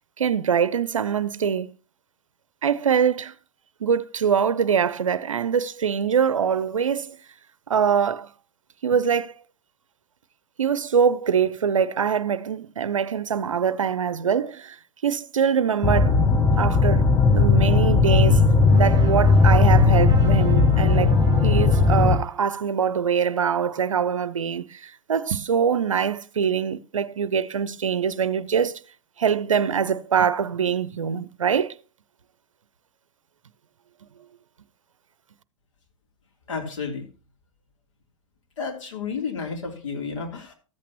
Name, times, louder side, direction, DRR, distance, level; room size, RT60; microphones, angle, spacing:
voice 1, 0.2-1.7 2.6-3.3 3.8-7.2 7.7-8.3 8.8-9.3 10.6-14.8 15.0-16.2 16.6-18.4 18.7-21.2 21.4-28.8 29.2-31.8, right 7 dB, 90° right, 0.5 m, -23 dB
sound 1, 15.8-22.2, left 4 dB, 15° left, 1.0 m, -17 dB
sound 2, 18.5-22.5, right 5 dB, 20° right, 3.7 m, -38 dB
voice 2, 36.5-37.1 38.6-40.5, left 5 dB, 75° left, 3.1 m, -31 dB
14.0 x 8.4 x 2.9 m
hypercardioid pair, 105°, 16 cm